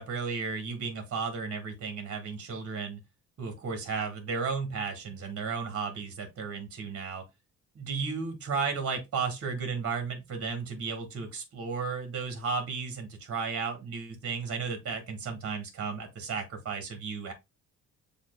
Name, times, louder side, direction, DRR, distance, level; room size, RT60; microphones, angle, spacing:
voice 1, 0.0-3.0 3.4-7.2 7.7-17.3, right 5 dB, 50° right, 1.5 m, -34 dB
7.2 x 2.5 x 2.3 m
cardioid pair, 90°, 30 cm